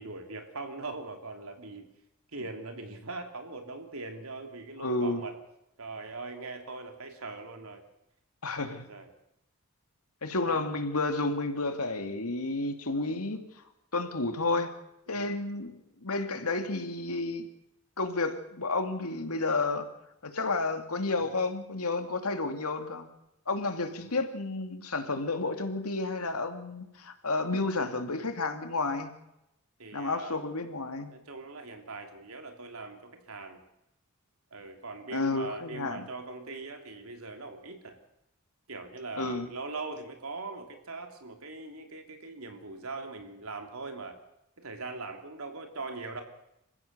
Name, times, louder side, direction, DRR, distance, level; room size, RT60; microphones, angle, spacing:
voice 1, 0.0-1.9 2.3-5.3 5.8-7.8 8.6-9.1 10.4-10.7 15.1-15.4 21.1-21.3 24.0-24.2 29.8-30.4 31.1-33.6 34.5-38.0 38.7-44.2 44.6-46.2, right 3 dB, 75° right, 5 dB, 3.1 m, -41 dB
voice 2, 4.8-5.2 8.4-8.9 10.2-13.4 13.9-14.7 15.1-17.5 18.0-19.9 20.2-23.1 23.5-29.1 29.9-31.1 35.1-36.1 39.2-39.5, left 3 dB, 90° left, 7 dB, 2.5 m, -31 dB
27.0 x 15.5 x 6.8 m, 0.86 s
head